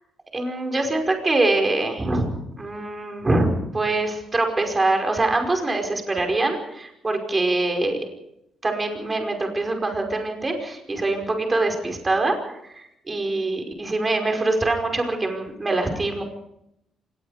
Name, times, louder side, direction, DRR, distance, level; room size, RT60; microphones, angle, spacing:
voice 1, 0.3-8.0 8.6-12.4 12.6-16.2, right 2 dB, 25° right, 3 dB, 5.3 m, -24 dB
25.5 x 20.5 x 5.1 m, 0.79 s
cardioid pair, 90°, 0 cm